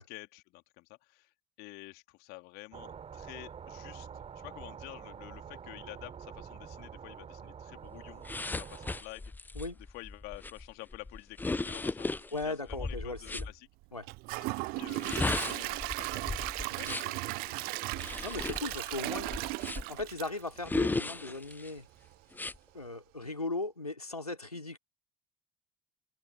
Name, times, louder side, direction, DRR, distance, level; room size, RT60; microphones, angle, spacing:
voice 1, 0.0-1.3 1.6-9.3 9.9-13.7 14.6-18.3 19.1-19.4 19.7-19.9, left 24 dB, 60° left, 3.5 m, -50 dB
sound 1, 2.7-9.0, right 7 dB, 35° right, 4.0 m, -47 dB
sound 2, 8.2-13.5 14.9-17.2 17.9-20.0 20.6-21.7 22.3-22.6, left 3 dB, 10° left, 0.6 m, -36 dB
voice 2, 12.3-13.5 13.9-14.1 18.2-19.3 19.9-21.9 22.7-24.8, left 2 dB, 90° left, 3.2 m, -38 dB
Gurgling / Toilet flush / Trickle dribble, 14.0-21.1 21.5-21.6 22.1-22.2, right 24 dB, 55° right, 0.6 m, -36 dB
figure-of-eight pair, 60°, 19 cm